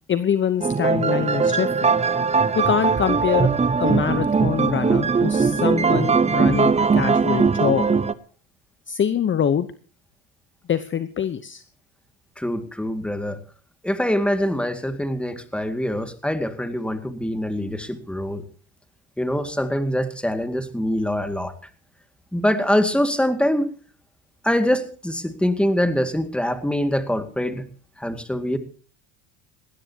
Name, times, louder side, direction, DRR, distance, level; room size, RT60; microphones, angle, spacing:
voice 1, 0.1-1.9 2.5-3.5 3.8-7.9 8.9-9.7 10.7-11.6, left 8 dB, 30° left, 13 dB, 0.9 m, -24 dB
sound 1, 0.6-8.1, right 5 dB, 15° right, 0.8 m, -20 dB
voice 2, 12.4-13.4 13.8-18.4 19.2-21.5 22.3-23.7 24.4-27.7 28.0-28.6, equal, 5° left, 9 dB, 2.1 m, -24 dB
19.5 x 16.5 x 2.9 m, 0.39 s
supercardioid pair, 105°, 41 cm